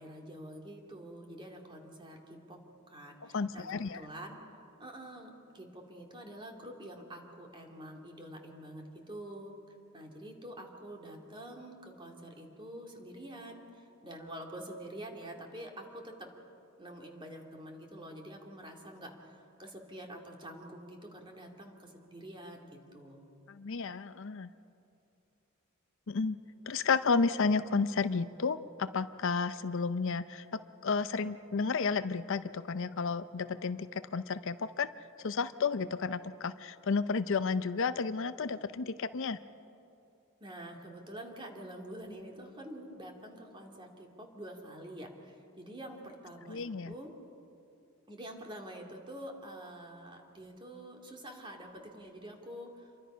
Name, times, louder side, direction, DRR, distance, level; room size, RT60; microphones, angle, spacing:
voice 1, 0.0-2.6 2.9-4.4 4.8-9.5 9.9-16.3 16.8-19.3 19.6-23.2 40.4-47.1 48.1-52.9, right 1 dB, 25° right, 1 dB, 2.6 m, -47 dB
voice 2, 3.3-4.0 23.5-24.5 26.1-26.4 26.7-34.9 35.2-39.4 46.5-46.9, left 4 dB, 65° left, 12 dB, 0.6 m, -32 dB
27.5 x 23.0 x 5.6 m, 2.7 s
head